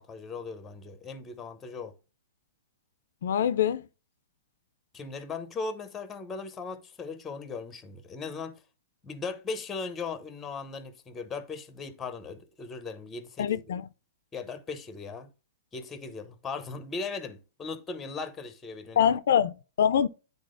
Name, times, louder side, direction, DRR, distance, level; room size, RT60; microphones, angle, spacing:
voice 1, 0.0-1.9 4.9-8.6 9.0-13.6 14.3-15.3 15.7-19.2, left 4 dB, 10° left, 0.7 m, -38 dB
voice 2, 3.2-3.8 13.4-13.8 19.0-20.1, left 9 dB, 65° left, 0.4 m, -24 dB
10.0 x 4.1 x 2.5 m
hypercardioid pair, 165°, 0 cm